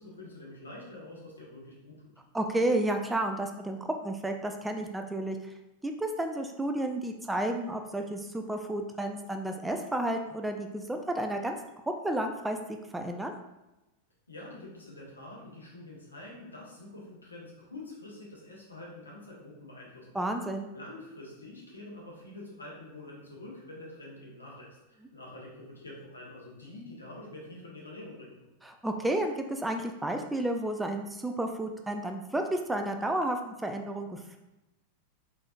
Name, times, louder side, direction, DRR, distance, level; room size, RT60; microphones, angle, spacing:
voice 1, 0.0-2.1 14.3-20.4 20.7-28.5, left 2 dB, 75° left, -3 dB, 1.2 m, -46 dB
voice 2, 2.3-5.5 5.8-11.6 12.0-12.6 12.9-13.3 20.1-20.7 28.6-34.4, right 1 dB, 5° right, 4 dB, 0.4 m, -31 dB
4.4 x 4.1 x 2.4 m, 0.98 s
figure-of-eight pair, 90°, 0 cm